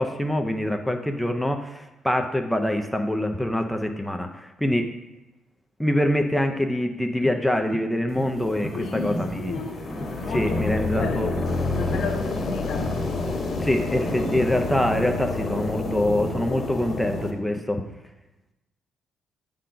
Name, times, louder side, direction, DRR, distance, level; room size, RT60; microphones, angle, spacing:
voice 1, 0.0-4.8 5.8-9.5 9.9-11.3 13.6-17.8, left 1 dB, 5° left, 4 dB, 0.4 m, -25 dB
sound 1, 7.2-7.9 8.1-8.8 9.1-9.7 10.0-10.6 10.9-11.5 11.9-12.5 12.8-13.4 13.7-14.4, equal, 40° right, 1.1 m, -37 dB
sound 2, 8.1-17.3, left 2 dB, 40° left, 1.2 m, -29 dB
voice 2, 8.7-9.8 10.2-13.0, left 4 dB, 65° left, 2 dB, 1.0 m, -34 dB
7.4 x 3.8 x 5.6 m, 1.0 s
cardioid pair, 145°, 0 cm